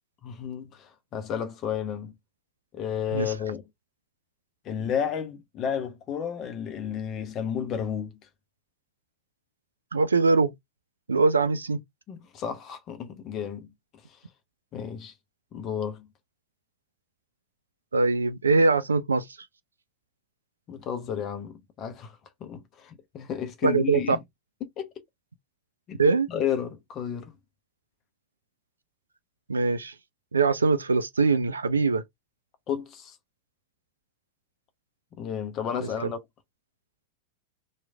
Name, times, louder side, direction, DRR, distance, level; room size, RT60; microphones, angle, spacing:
voice 1, 0.2-2.1 2.7-3.6 4.6-8.2 12.1-13.7 14.1-14.2 14.7-15.1 15.5-16.1 20.7-24.2 24.6-24.9 25.9-26.0 26.3-27.3 32.7-33.2 35.2-36.2, left 8 dB, 30° left, 0.7 m, -32 dB
voice 2, 9.9-10.5 11.1-11.8 17.9-19.3 23.6-24.2 26.0-26.3 29.5-29.9 30.3-32.0 35.8-36.1, right 4 dB, 75° right, 0.4 m, -22 dB
3.0 x 2.4 x 3.3 m
figure-of-eight pair, 90°, 0 cm